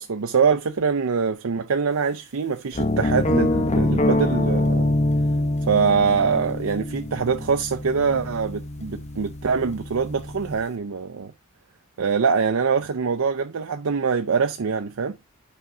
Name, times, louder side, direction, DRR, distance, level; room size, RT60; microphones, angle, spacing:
voice 1, 0.0-4.9 5.7-11.3 12.0-15.2, right 5 dB, 80° right, 0.6 m, -24 dB
sound 1, 2.7-10.6, left 1 dB, 30° left, 0.8 m, -25 dB
5.8 x 4.0 x 5.9 m
head